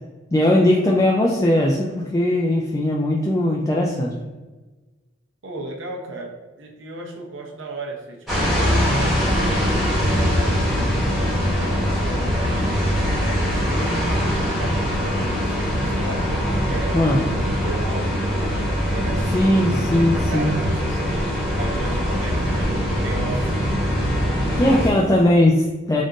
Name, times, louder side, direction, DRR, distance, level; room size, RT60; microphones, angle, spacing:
voice 1, 0.3-4.3 16.9-17.2 19.3-20.5 24.6-26.0, left 1 dB, 15° left, -3 dB, 0.3 m, -19 dB
voice 2, 5.4-9.5 10.0-16.3 16.7-18.6 18.9-23.6 24.5-24.9, right 2 dB, 75° right, 0 dB, 0.8 m, -36 dB
sound 1, 8.3-24.9, equal, ahead, 1.0 m, -22 dB
3.6 x 2.5 x 3.8 m, 1.2 s
head